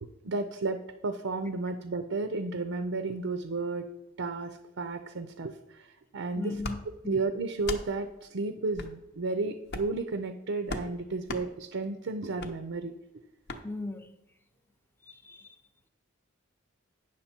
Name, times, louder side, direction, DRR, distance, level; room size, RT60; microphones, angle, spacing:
voice 1, 0.0-3.9 4.2-6.6 7.1-12.9, right 3 dB, 65° right, 9 dB, 0.5 m, -33 dB
voice 2, 6.4-6.8 7.0-7.2 13.6-14.1 15.0-15.6, left 2 dB, 10° left, 7 dB, 0.6 m, -37 dB
sound 1, 6.6-6.8 7.6-7.9 8.7-8.9 9.7-10.0 10.7-10.9 11.3-11.5 12.4-12.5 13.5-13.6, left 2 dB, 55° left, 0.8 m, -36 dB
9.2 x 6.2 x 4.3 m, 0.95 s
head